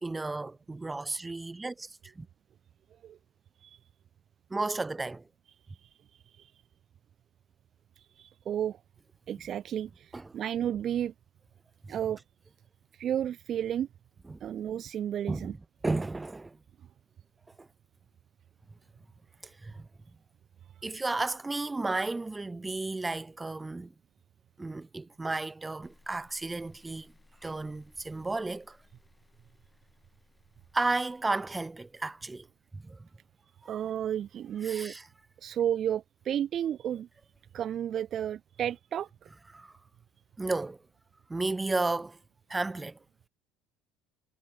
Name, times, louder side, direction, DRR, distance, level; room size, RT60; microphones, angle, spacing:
voice 1, 0.0-2.3 4.5-5.3 10.1-10.4 11.9-12.0 14.2-14.4 15.3-16.6 17.6-17.7 19.4-19.9 20.8-23.9 24.6-27.1 27.4-28.8 30.7-32.5 32.7-33.1 34.6-35.0 39.5-39.7 40.4-40.8 41.3-42.2 42.5-43.0, right 3 dB, 15° right, 1.2 m, -33 dB
voice 2, 8.0-8.8 9.3-11.1 11.9-12.2 13.0-13.9 14.4-15.5 33.7-34.9 35.4-37.1 37.5-39.1, right 10 dB, 45° right, 0.4 m, -32 dB
sound 1, 25.8-32.9, left 3 dB, 15° left, 7.1 m, -64 dB
hypercardioid pair, 65°, 0 cm